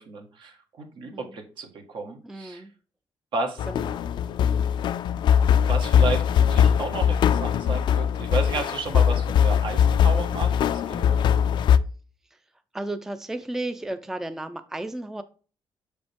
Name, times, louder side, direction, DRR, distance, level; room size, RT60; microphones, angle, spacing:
voice 1, 0.0-2.6 3.3-3.7 5.6-11.2, right 4 dB, 70° right, 4 dB, 1.5 m, -33 dB
voice 2, 2.2-2.7 3.7-4.0 12.3-12.4 12.7-15.2, right 1 dB, 5° right, 10 dB, 0.4 m, -34 dB
sound 1, 3.6-11.8, left 8 dB, 65° left, 0.4 m, -21 dB
6.5 x 5.1 x 3.5 m, 0.37 s
cardioid pair, 140°, 9 cm